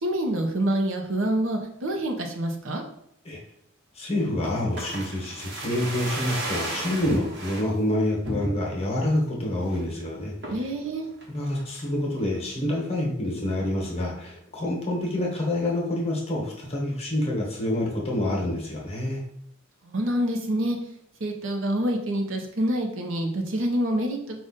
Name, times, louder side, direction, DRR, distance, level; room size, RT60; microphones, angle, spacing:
voice 1, 0.0-2.8 10.5-11.1 19.8-20.8 21.2-24.4, right 1 dB, 70° right, 3 dB, 0.8 m, -26 dB
voice 2, 3.9-10.6 11.3-19.2, left 1 dB, 30° left, -2 dB, 1.1 m, -27 dB
sound 1, 4.4-7.7 8.2-8.9 9.3-9.4 9.6-9.9 10.4-10.7 11.2-11.9 12.2-12.3, right 1 dB, 55° right, 1.1 m, -34 dB
5.0 x 2.4 x 4.0 m, 0.72 s
head